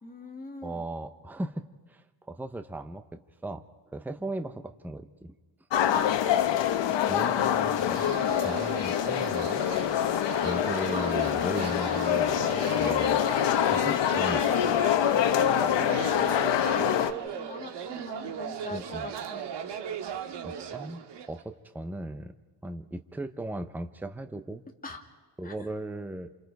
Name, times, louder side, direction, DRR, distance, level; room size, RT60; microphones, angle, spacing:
voice 1, 0.0-0.9 5.9-6.1 15.4-19.5 24.8-25.0 25.4-25.6, left 3 dB, 20° left, 2 dB, 2.2 m, -42 dB
voice 2, 0.6-3.6 3.9-5.3 7.0-10.2 10.4-12.4 12.8-13.2 13.6-14.8 18.7-19.1 20.4-22.3 22.6-24.6 25.4-26.3, right 1 dB, 5° right, 9 dB, 0.7 m, -38 dB
sound 1, 5.7-17.1, left 10 dB, 80° left, 1.2 m, -25 dB
sound 2, 7.8-21.4, right 8 dB, 70° right, 1.9 m, -38 dB
29.5 x 28.0 x 4.7 m, 1.3 s
cardioid pair, 175°, 43 cm